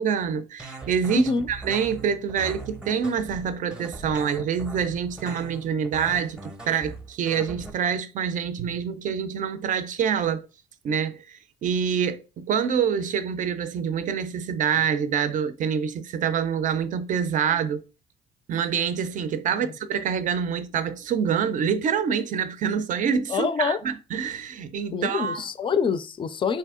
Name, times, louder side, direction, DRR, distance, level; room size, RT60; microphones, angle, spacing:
voice 1, 0.0-10.4 10.8-11.2 11.6-17.8 18.5-25.4, right 7 dB, 50° right, 0.5 m, -26 dB
sound 1, 0.6-7.7, right 3 dB, 5° right, 0.7 m, -40 dB
voice 2, 1.1-1.5 19.6-19.7 23.3-23.8 24.9-26.6, left 5 dB, 30° left, 0.4 m, -25 dB
3.4 x 2.7 x 3.6 m
cardioid pair, 110°, 17 cm